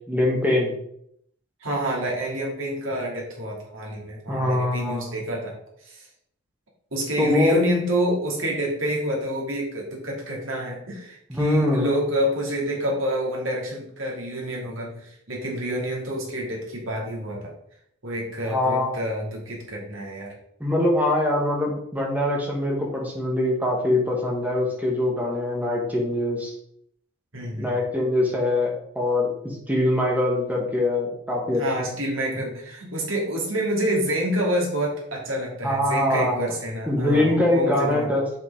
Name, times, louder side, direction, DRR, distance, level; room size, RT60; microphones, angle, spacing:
voice 1, 0.1-0.7 4.3-5.2 7.2-7.6 11.3-11.9 18.5-18.9 20.6-26.5 27.5-31.6 35.6-36.4 36.9-38.2, left 1 dB, 10° right, -2 dB, 1.8 m, -23 dB
voice 2, 1.6-5.5 5.8-6.0 6.9-17.5 18.0-20.3 27.3-27.7 31.6-38.1, right 1 dB, 90° right, -2 dB, 2.7 m, -28 dB
7.3 x 6.2 x 3.7 m, 0.72 s
head